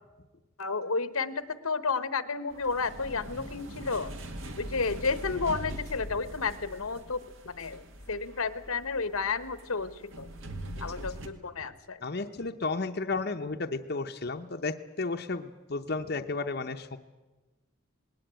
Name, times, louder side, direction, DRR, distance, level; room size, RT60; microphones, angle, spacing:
voice 1, 0.6-4.1 4.6-7.8 8.1-10.3 10.8-12.0, left 4 dB, 80° left, 14 dB, 1.1 m, -32 dB
sound 1, 2.5-11.3, right 1 dB, 65° right, 1.9 m, -42 dB
voice 2, 12.0-17.0, left 3 dB, 45° left, 5 dB, 0.8 m, -33 dB
19.5 x 18.5 x 8.9 m, 1.2 s
head